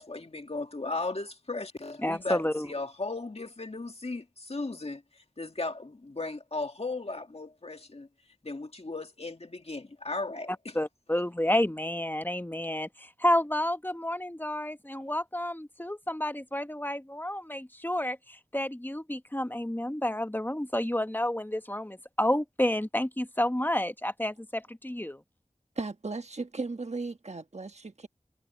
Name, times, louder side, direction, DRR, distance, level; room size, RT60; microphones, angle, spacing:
voice 1, 0.0-8.1 8.4-10.8, left 3 dB, 55° left, 1.9 m, -36 dB
voice 2, 2.0-2.7 10.7-25.2, left 1 dB, 15° left, 1.1 m, -30 dB
voice 3, 25.8-28.1, right 3 dB, 60° right, 1.4 m, -36 dB
wide cardioid pair, 45°, 13 cm